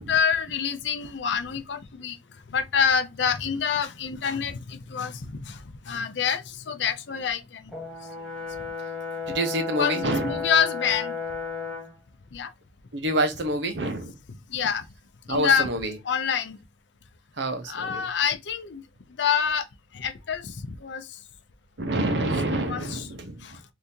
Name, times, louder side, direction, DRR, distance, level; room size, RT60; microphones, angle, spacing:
voice 1, 0.0-2.2 2.5-5.6 5.9-7.6 9.8-11.1 12.3-12.5 14.5-14.8 15.3-15.7 16.0-16.6 17.7-18.8 19.2-19.6 19.9-20.5 20.8-21.0 22.5-23.1 23.4-23.5, left 7 dB, 75° left, 0.5 m, -26 dB
Brass instrument, 7.7-11.9, left 5 dB, ahead, 1.0 m, -33 dB
voice 2, 9.3-10.5 12.9-14.1 15.3-16.0 17.4-18.1 21.8-23.4, right 1 dB, 75° right, 0.8 m, -27 dB
3.6 x 2.7 x 2.7 m
head